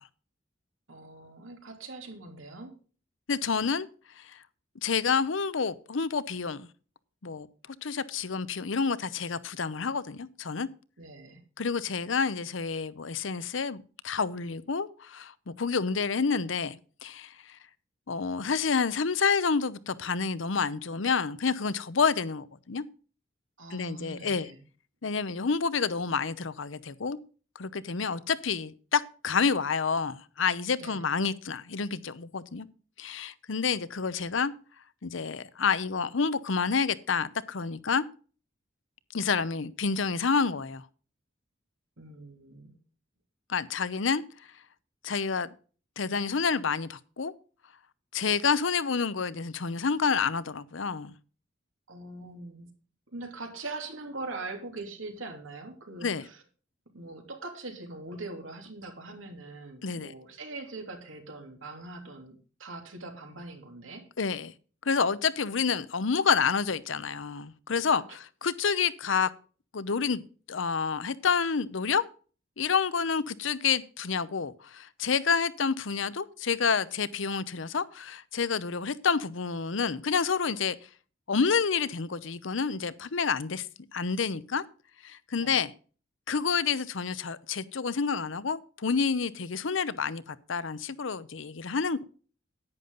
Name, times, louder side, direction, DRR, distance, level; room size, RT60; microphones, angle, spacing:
voice 1, 0.9-2.8 11.0-11.4 23.6-24.6 30.8-31.1 42.0-42.8 51.9-52.7 53.1-56.4 56.9-64.1 85.4-85.6, right 2 dB, 85° right, 3.0 m, -42 dB
voice 2, 3.3-3.9 4.2-4.3 4.8-6.7 7.2-7.5 7.8-10.7 11.6-17.3 18.1-22.8 23.7-24.5 25.0-27.2 27.6-32.7 33.0-34.5 35.0-38.0 39.1-40.8 43.5-44.2 45.0-45.5 46.0-47.3 48.1-51.1 56.0-56.2 59.8-60.1 64.2-64.5 64.9-69.3 69.7-70.2 70.5-72.0 72.6-80.8 81.3-83.7 83.9-84.6 85.0-85.7 86.3-92.0, left 5 dB, 75° left, 0.7 m, -29 dB
11.0 x 9.5 x 3.9 m
head